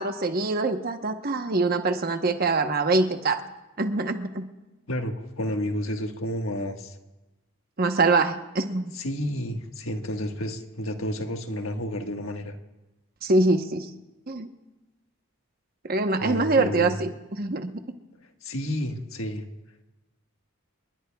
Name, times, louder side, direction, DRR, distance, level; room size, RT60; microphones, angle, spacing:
voice 1, 0.0-3.4 3.8-4.4 7.8-8.9 13.2-13.9 14.3-14.5 15.8-17.1 17.4-17.7, right 3 dB, 45° right, 7 dB, 1.0 m, -24 dB
voice 2, 4.9-7.0 8.9-12.5 16.2-17.0 18.4-19.4, equal, 75° left, 4 dB, 1.5 m, -31 dB
29.0 x 20.0 x 2.3 m, 1.1 s
head